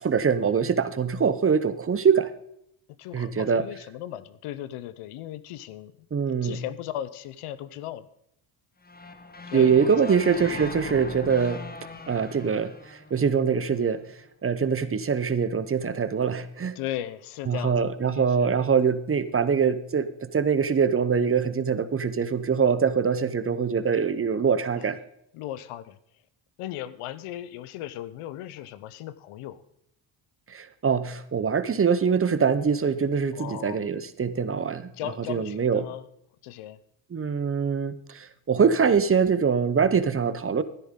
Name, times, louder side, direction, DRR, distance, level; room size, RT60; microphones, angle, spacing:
voice 1, 0.0-2.3 3.1-3.6 6.1-6.6 9.5-11.6 12.1-14.0 14.4-16.8 17.5-25.0 30.5-34.9 35.3-35.8 37.1-40.6, right 6 dB, 25° right, 13 dB, 0.7 m, -23 dB
voice 2, 3.0-6.1 6.4-8.1 9.5-10.2 16.8-18.6 24.7-24.8 25.3-26.0 26.6-29.6 33.3-33.8 34.9-36.1 36.4-36.8, left 12 dB, 90° left, 15 dB, 0.8 m, -37 dB
sound 1, 8.8-13.9, left 2 dB, 20° left, 1.0 m, -40 dB
13.0 x 10.5 x 3.7 m, 0.73 s
cardioid pair, 90°, 50 cm